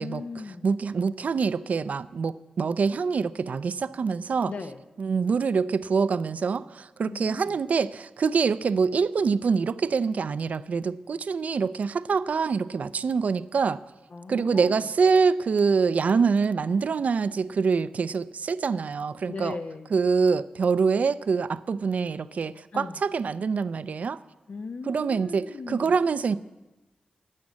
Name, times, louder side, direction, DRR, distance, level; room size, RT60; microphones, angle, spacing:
voice 1, 0.0-0.7 4.5-4.8 7.1-7.6 14.1-14.8 19.3-19.9 22.7-23.0 24.5-26.0, left 4 dB, 60° left, 8 dB, 0.9 m, -38 dB
voice 2, 0.6-4.5 5.0-13.8 14.3-19.6 19.9-24.2 24.9-26.4, right 5 dB, 65° right, 15 dB, 0.5 m, -25 dB
11.0 x 9.4 x 7.4 m, 1.1 s
cardioid pair, 65°, 3 cm